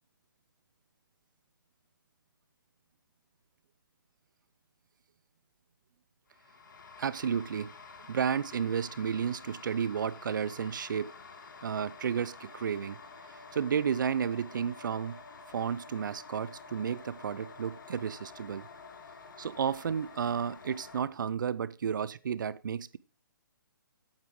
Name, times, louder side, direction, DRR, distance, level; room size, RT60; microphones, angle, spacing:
sound 1, 6.3-21.0, left 4 dB, 60° left, 1.9 m, -50 dB
voice 1, 7.0-7.7 8.1-11.1 11.6-13.0 13.5-15.2 15.5-18.7 19.4-23.0, right 7 dB, 60° right, 0.6 m, -32 dB
8.6 x 8.3 x 4.7 m
hypercardioid pair, 160°, 12 cm